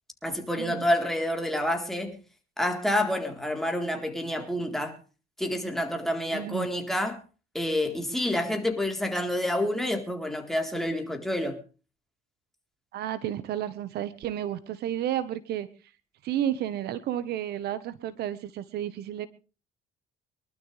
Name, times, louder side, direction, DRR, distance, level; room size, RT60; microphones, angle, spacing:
voice 1, 0.2-2.2 2.6-5.0 5.4-7.2 7.5-11.6, left 1 dB, ahead, 3.9 m, -28 dB
voice 2, 6.3-6.7 12.9-15.7 16.2-19.3, right 11 dB, 75° right, 1.3 m, -31 dB
25.0 x 12.5 x 3.4 m
cardioid pair, 110°, 17 cm